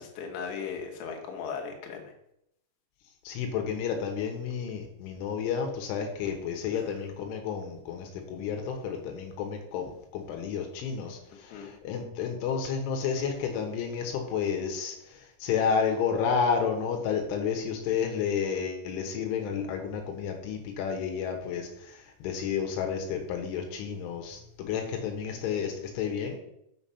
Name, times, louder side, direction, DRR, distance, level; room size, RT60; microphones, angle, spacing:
voice 1, 0.0-2.0 6.7-6.8 11.5-11.7, left 6 dB, 70° left, 1 dB, 3.4 m, -37 dB
voice 2, 3.3-26.4, left 6 dB, 90° left, 3 dB, 3.7 m, -31 dB
7.1 x 7.0 x 5.6 m, 0.78 s
omnidirectional pair, 5.4 m